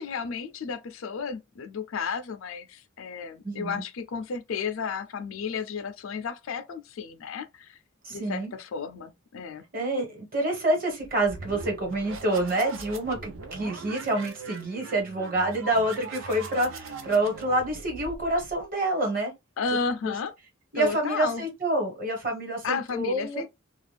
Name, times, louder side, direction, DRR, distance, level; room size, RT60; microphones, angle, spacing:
voice 1, 0.0-7.8 8.1-9.6 19.6-20.3 20.7-21.4 22.6-23.5, left 5 dB, 70° left, 0.4 m, -33 dB
voice 2, 3.4-3.8 8.0-8.5 9.7-19.3 20.0-20.1 20.7-23.5, right 1 dB, 40° right, 1.3 m, -27 dB
sound 1, 11.0-18.6, right 3 dB, 70° right, 0.5 m, -41 dB
2.4 x 2.3 x 3.2 m
head